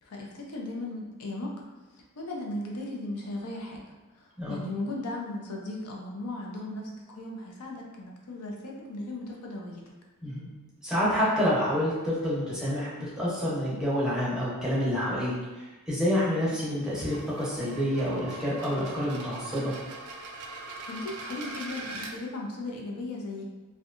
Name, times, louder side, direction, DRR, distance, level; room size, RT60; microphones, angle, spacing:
voice 1, 0.0-1.5 1.9-3.8 4.1-9.8 20.8-23.5, left 2 dB, 80° left, -1 dB, 0.5 m, -37 dB
voice 2, 10.8-19.7, equal, 5° right, -9 dB, 0.7 m, -28 dB
sound 1, 16.8-22.1, right 3 dB, 80° right, 0.4 m, -41 dB
2.7 x 2.2 x 2.4 m, 1.2 s
head